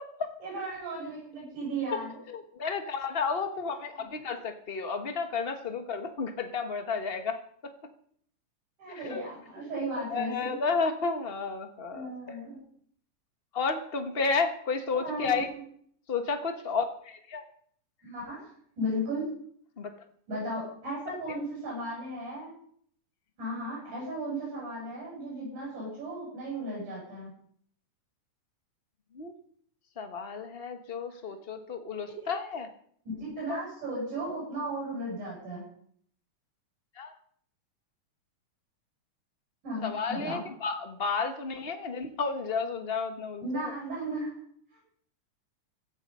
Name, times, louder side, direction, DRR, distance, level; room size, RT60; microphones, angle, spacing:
voice 1, 0.4-2.2 3.7-4.2 8.8-10.6 11.9-12.6 14.9-15.4 18.0-18.4 18.8-19.3 20.3-22.5 23.4-27.3 31.1-31.2 33.1-35.6 39.6-40.4 43.4-44.4 44.7-44.8, right 1 dB, 85° right, -5 dB, 9.5 m, -35 dB
voice 2, 2.3-7.4 7.6-7.7 8.9-9.2 10.1-12.4 13.5-15.5 16.1-17.4 19.8-19.9 21.3-21.4 29.1-29.3 30.0-32.7 33.5-33.6 37.0-37.1 39.8-43.7, left 4 dB, 80° left, 6 dB, 0.5 m, -32 dB
16.5 x 13.5 x 5.5 m, 0.62 s
omnidirectional pair, 3.5 m